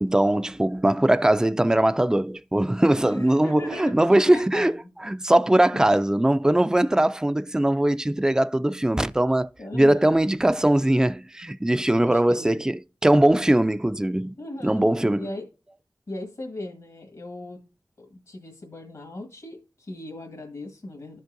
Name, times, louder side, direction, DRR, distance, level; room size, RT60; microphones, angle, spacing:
voice 1, 0.0-4.7 5.1-14.4 14.6-15.3, right 1 dB, 10° right, 0.4 m, -21 dB
voice 2, 3.0-4.9 5.7-6.0 9.6-10.1 12.0-12.7 14.4-14.9 15.1-15.5 16.1-17.6 18.0-21.2, left 1 dB, 70° left, 1.5 m, -38 dB
11.0 x 5.3 x 2.6 m
cardioid pair, 45°, 7 cm